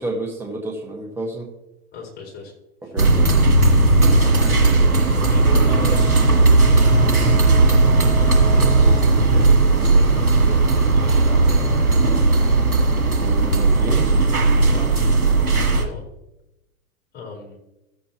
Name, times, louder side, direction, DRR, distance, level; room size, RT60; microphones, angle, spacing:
voice 1, 0.0-1.5 2.8-3.1 13.2-14.1, right 2 dB, 5° right, 1 dB, 1.2 m, -30 dB
voice 2, 1.9-2.5 2.8-3.2 4.1-5.0 5.2-6.1 6.7-7.2 8.1-12.2 14.7-15.2 15.6-16.0 17.1-17.6, left 4 dB, 20° left, -1 dB, 4.2 m, -37 dB
sound 1, 3.0-15.8, right 3 dB, 90° right, 1.8 m, -16 dB
15.0 x 7.5 x 2.9 m, 0.93 s
hypercardioid pair, 110°, 43 cm